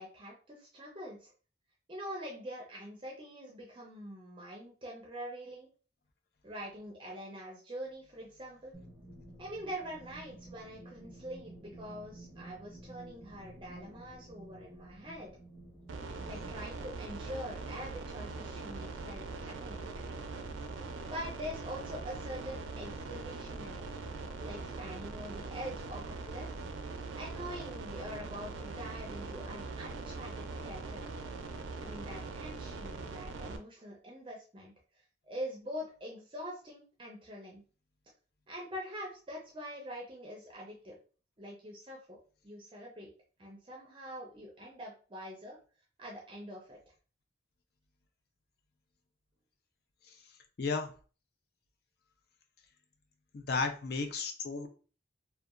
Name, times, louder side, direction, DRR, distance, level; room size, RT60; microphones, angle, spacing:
voice 1, 0.0-1.3 1.9-5.7 6.4-8.7 9.4-15.4 16.2-19.8 21.1-23.9 24.4-26.6 27.1-31.1 31.8-34.7 35.2-37.6 38.5-41.0 41.4-42.2 42.4-43.1 43.4-45.6 46.0-46.8, equal, 25° right, -1 dB, 0.5 m, -44 dB
sound 1, 8.7-16.5, right 2 dB, 5° left, 0.9 m, -52 dB
sound 2, 15.9-33.6, right 3 dB, 90° right, 0.4 m, -42 dB
voice 2, 50.6-50.9 53.3-54.7, left 4 dB, 55° left, 6 dB, 0.4 m, -33 dB
2.8 x 2.2 x 2.4 m, 0.38 s
head